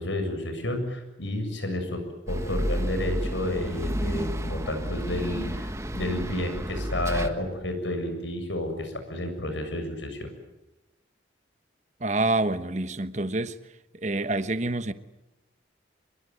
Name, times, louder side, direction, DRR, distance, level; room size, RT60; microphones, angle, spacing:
voice 1, 0.0-2.0 2.3-10.3, left 1 dB, 90° left, 7.5 m, -31 dB
sound 1, 2.3-7.3, equal, 15° right, 1.6 m, -31 dB
voice 2, 12.0-13.5 14.0-14.9, right 2 dB, 40° right, 1.2 m, -27 dB
26.5 x 22.0 x 9.6 m
head